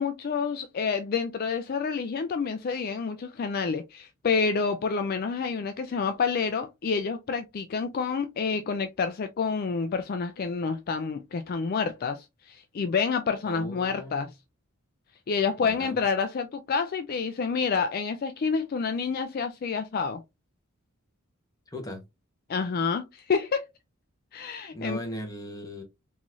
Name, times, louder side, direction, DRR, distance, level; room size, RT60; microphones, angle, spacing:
voice 1, 0.0-14.3 15.3-20.2 22.5-23.6 24.3-25.0, left 5 dB, 45° left, 0.3 m, -28 dB
voice 2, 13.5-14.3 15.6-16.0 21.7-22.0 24.7-25.8, equal, 15° left, 1.0 m, -38 dB
3.8 x 3.0 x 2.5 m
head